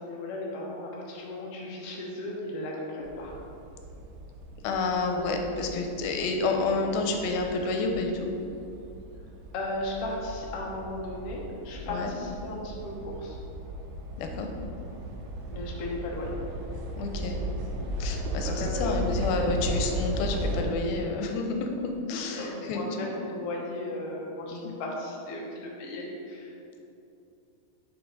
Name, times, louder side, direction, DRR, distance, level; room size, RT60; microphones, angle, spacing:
voice 1, 0.0-3.4 9.5-13.4 15.5-16.3 18.4-19.1 22.3-26.8, left 1 dB, 65° left, -3 dB, 1.5 m, -36 dB
sound 1, 3.0-20.6, right 1 dB, 85° right, 2.5 m, -36 dB
voice 2, 4.6-8.3 11.9-12.1 14.2-14.5 17.0-17.4 18.0-23.1 24.5-24.8, left 3 dB, 90° left, 3 dB, 2.5 m, -29 dB
7.0 x 5.5 x 3.9 m, 2.8 s
omnidirectional pair, 4.2 m